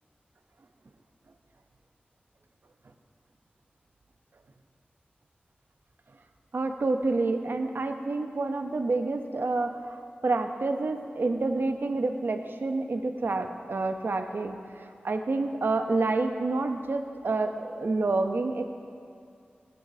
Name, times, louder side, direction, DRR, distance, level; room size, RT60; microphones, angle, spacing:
voice 1, 6.5-18.7, right 3 dB, 70° right, 6 dB, 0.7 m, -28 dB
16.0 x 8.9 x 2.7 m, 2.4 s
cardioid pair, 45°, 4 cm